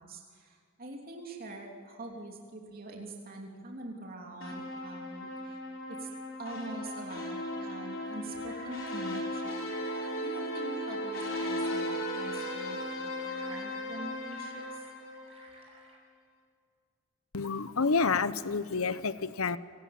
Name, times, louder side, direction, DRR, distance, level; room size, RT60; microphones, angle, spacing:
voice 1, 0.0-5.6 5.9-9.6 10.2-14.8, right 1 dB, 45° right, 0 dB, 3.2 m, -45 dB
sound 1, 4.4-15.6, equal, 65° left, 5.1 m, -36 dB
sound 2, 8.4-16.0, right 2 dB, 30° right, 6.6 m, -55 dB
voice 2, 17.3-19.6, left 4 dB, 80° left, 14 dB, 1.0 m, -29 dB
27.5 x 19.0 x 8.8 m, 2.3 s
head